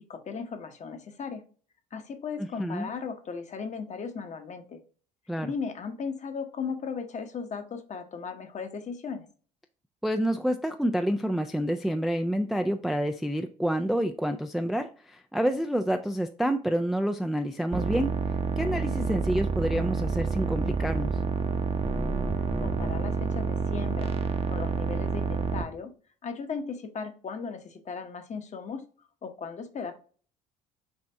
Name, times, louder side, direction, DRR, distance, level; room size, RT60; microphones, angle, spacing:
voice 1, 0.1-1.4 1.9-4.8 5.4-9.3 22.6-24.1 24.5-25.9 26.2-28.8 29.2-29.9, left 5 dB, 35° left, 7 dB, 0.9 m, -36 dB
voice 2, 2.4-2.9 5.3-5.5 10.0-18.1 18.6-21.2, equal, ahead, 7 dB, 0.3 m, -28 dB
sound 1, 17.7-25.6, right 5 dB, 30° right, 0.7 m, -28 dB
6.3 x 2.5 x 3.4 m, 0.41 s
figure-of-eight pair, 55°, 21 cm